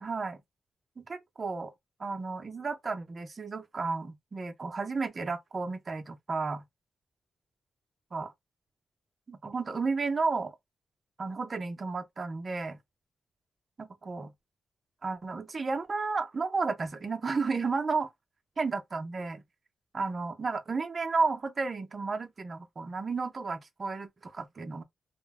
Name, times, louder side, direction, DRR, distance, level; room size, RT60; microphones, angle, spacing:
voice 1, 0.0-0.4 1.0-1.7 2.0-6.6 8.1-8.3 9.3-10.5 11.2-12.8 13.8-14.3 15.0-18.1 18.6-19.4 19.9-24.8, right 4 dB, 35° right, 0.6 m, -32 dB
2.4 x 2.1 x 3.4 m
wide cardioid pair, 135°, 0 cm